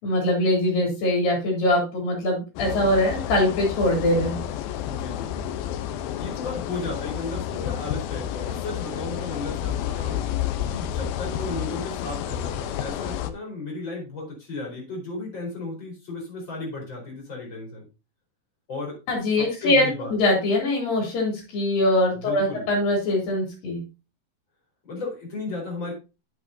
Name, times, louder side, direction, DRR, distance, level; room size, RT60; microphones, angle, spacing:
voice 1, 0.0-4.4 19.1-19.8 20.1-23.8, left 1 dB, 70° left, -1 dB, 5.0 m, -22 dB
sound 1, 2.6-13.3, left 10 dB, 85° left, 2.6 m, -30 dB
voice 2, 4.9-5.5 6.2-10.2 10.7-17.9 18.7-19.0 19.4-20.1 22.1-22.7 24.9-25.9, left 3 dB, 30° left, 0 dB, 4.8 m, -34 dB
11.0 x 8.1 x 2.7 m, 0.29 s
omnidirectional pair, 4.2 m